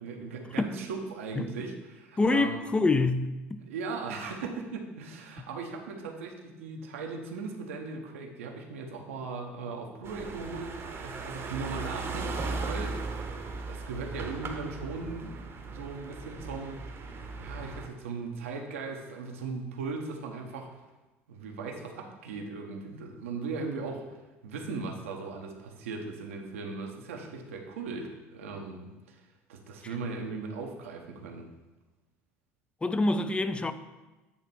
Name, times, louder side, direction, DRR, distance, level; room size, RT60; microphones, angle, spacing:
voice 1, 0.0-2.6 3.6-13.0 13.7-20.7 21.3-24.1 24.4-29.2 29.5-31.5, right 4 dB, 80° right, 0.8 m, -38 dB
voice 2, 2.2-3.6 32.8-33.7, left 3 dB, 15° left, 0.4 m, -26 dB
sound 1, 10.0-17.9, right 3 dB, 35° right, 0.8 m, -37 dB
8.4 x 2.9 x 4.3 m
hypercardioid pair, 70°, 7 cm